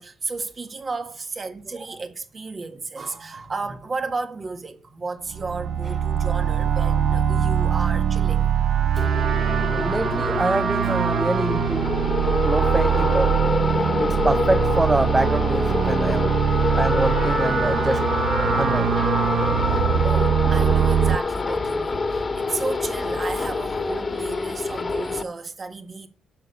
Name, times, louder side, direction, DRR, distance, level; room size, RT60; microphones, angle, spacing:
voice 1, 0.0-8.5 19.7-26.1, right 3 dB, 35° right, 1.6 m, -33 dB
sound 1, 5.3-21.2, right 8 dB, 65° right, 0.7 m, -22 dB
sound 2, 9.0-25.2, left 3 dB, 30° left, 1.6 m, -26 dB
voice 2, 9.7-11.9 12.4-13.4 14.0-16.3 16.8-18.1 18.5-19.0, right 2 dB, 15° right, 0.5 m, -25 dB
8.5 x 6.7 x 6.9 m
cardioid pair, 90°, 0 cm